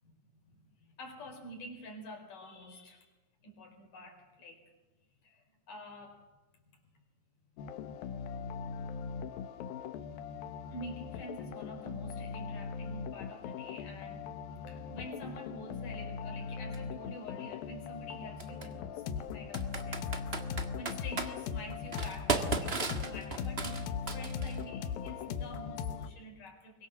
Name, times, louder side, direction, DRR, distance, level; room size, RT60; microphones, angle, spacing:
voice 1, 0.0-3.1 3.4-4.7 5.2-6.3 6.5-6.8 10.7-14.3 14.7-26.9, equal, 65° left, 2 dB, 6.0 m, -48 dB
sound 1, 7.6-26.1, left 6 dB, 85° left, 3.0 m, -39 dB
Computer keyboard, 16.7-16.8 18.4-18.7 19.5-21.3 21.9-24.6, right 4 dB, 55° right, 0.6 m, -35 dB
25.0 x 22.5 x 7.2 m, 1.1 s
omnidirectional pair, 4.0 m